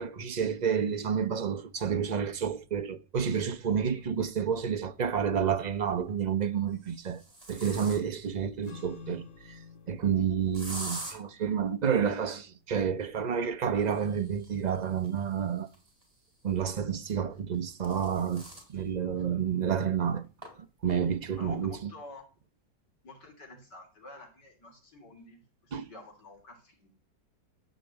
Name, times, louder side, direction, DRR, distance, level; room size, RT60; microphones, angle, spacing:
voice 1, 0.0-7.2 7.5-9.6 9.9-15.7 16.4-20.3 20.8-21.9 25.7-25.9, right 7 dB, 50° right, 0.5 m, -30 dB
sound 1, 4.2-4.3 5.7-6.1 6.7-8.3 10.5-11.2 13.7-16.4 17.4-18.7 19.2-19.3 19.6-19.7 20.4-20.5 20.9-21.3, right 1 dB, 20° right, 4.2 m, -45 dB
sound 2, 8.6-15.3, left 5 dB, 55° left, 2.7 m, -53 dB
voice 2, 21.4-22.2 23.0-26.9, left 2 dB, 75° left, 3.6 m, -50 dB
12.5 x 5.2 x 8.0 m
omnidirectional pair, 1.9 m